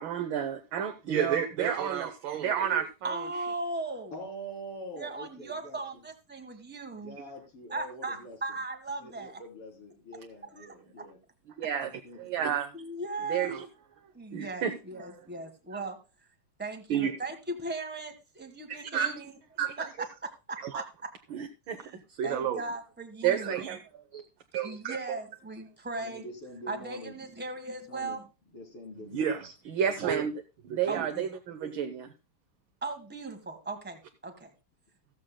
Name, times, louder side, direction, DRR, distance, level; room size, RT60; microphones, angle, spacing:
voice 1, 0.0-3.3 11.6-11.9 12.2-12.7 13.3-13.6 14.3-14.8 16.9-17.1 18.7-19.2 19.6-19.9 20.6-20.8 21.3-22.6 23.2-23.8 24.1-24.2 24.5-25.2 29.1-32.1, right 8 dB, 65° right, 5 dB, 1.6 m, -30 dB
voice 2, 3.0-4.1 5.0-7.2 7.7-9.4 10.6-10.7 12.7-13.6 14.1-16.0 16.6-19.3 19.8-21.1 21.8-22.0 22.2-23.5 24.6-26.2 26.7-28.3 30.9-31.3 32.8-34.5, right 2 dB, 5° right, 7 dB, 1.2 m, -38 dB
voice 3, 4.1-5.8 6.9-8.6 9.0-11.2 11.8-12.4 26.0-27.2 27.9-28.2 28.5-29.4, equal, 85° left, 2 dB, 4.4 m, -45 dB
15.0 x 14.0 x 2.2 m, 0.28 s
omnidirectional pair, 2.4 m